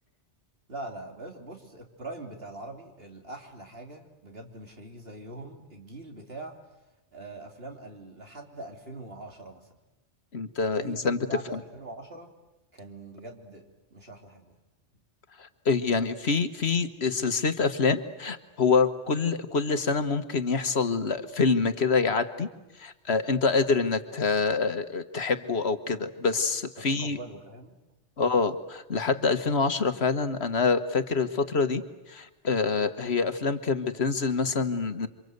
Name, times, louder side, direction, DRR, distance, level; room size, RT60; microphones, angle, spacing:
voice 1, 0.7-6.6 7.1-9.7 10.8-12.3 12.7-13.6 13.9-14.6 26.8-27.8, right 2 dB, 60° right, 2 dB, 3.5 m, -43 dB
voice 2, 10.3-11.2 15.4-22.5 22.8-27.2 28.2-31.8 32.1-35.1, left 4 dB, 65° left, 9 dB, 1.6 m, -26 dB
28.5 x 25.5 x 8.0 m, 1.0 s
omnidirectional pair, 1.2 m